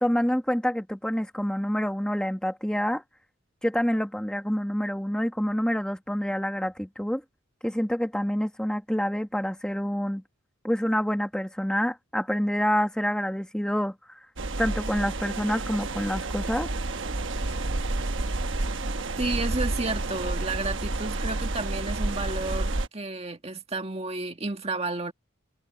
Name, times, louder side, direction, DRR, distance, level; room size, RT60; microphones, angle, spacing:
voice 1, 0.0-3.0 3.6-7.2 7.6-10.2 10.6-14.2 14.6-16.7, equal, 5° left, 1.4 m, -27 dB
sound 1, 14.4-22.9, right 2 dB, 60° right, 1.1 m, -30 dB
voice 2, 19.2-25.1, right 3 dB, 30° right, 1.8 m, -31 dB
head